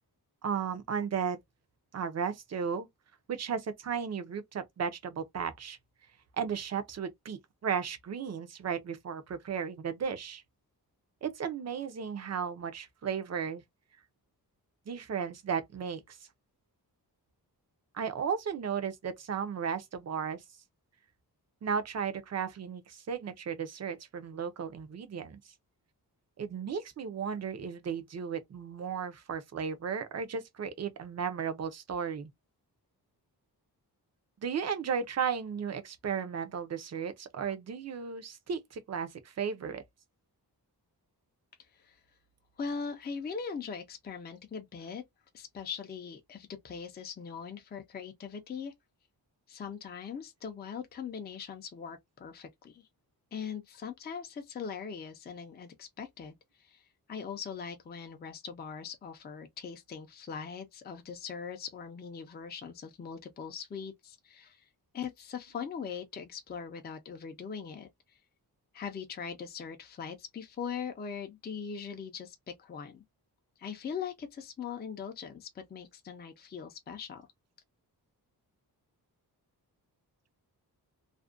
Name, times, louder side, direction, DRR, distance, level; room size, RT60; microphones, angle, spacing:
voice 1, 0.4-1.4 1.9-2.9 3.3-5.8 6.4-10.4 11.2-13.6 14.9-16.2 17.9-20.4 21.6-25.4 26.4-32.3 34.4-39.8, right 7 dB, 45° right, 0.5 m, -35 dB
voice 2, 41.6-42.0 42.6-45.0 45.3-48.7 49.5-52.9 53.3-56.8 57.1-64.7 64.9-67.9 68.7-73.0 73.6-77.2, left 6 dB, 25° left, 0.4 m, -41 dB
2.5 x 2.1 x 2.3 m
wide cardioid pair, 150°, 39 cm